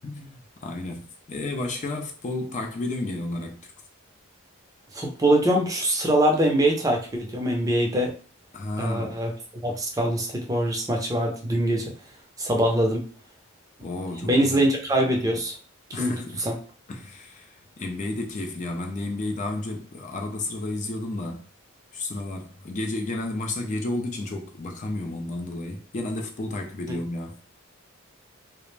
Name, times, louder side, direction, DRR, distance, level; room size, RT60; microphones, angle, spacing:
voice 1, 0.0-3.7 8.5-9.2 13.8-14.7 15.9-16.5 16.9-21.4 21.9-27.4, left 2 dB, 35° left, 0.4 m, -32 dB
voice 2, 4.9-8.1 8.8-11.9 12.4-13.0 14.2-15.6 16.0-16.1 16.4-16.5 26.9-27.0, right 1 dB, 15° right, 0.5 m, -23 dB
2.4 x 2.0 x 3.1 m
head